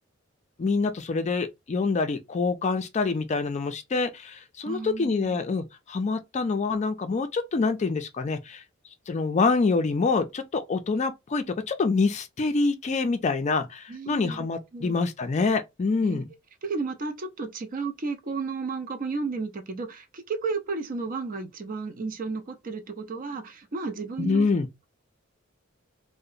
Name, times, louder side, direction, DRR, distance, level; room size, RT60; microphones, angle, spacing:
voice 1, 0.6-8.6 9.1-16.3 24.2-24.7, left 4 dB, 35° left, 0.4 m, -26 dB
voice 2, 4.6-5.4 13.9-14.5 14.7-14.9 16.0-16.2 16.6-24.5, right 4 dB, 40° right, 0.5 m, -33 dB
2.8 x 2.1 x 2.4 m
head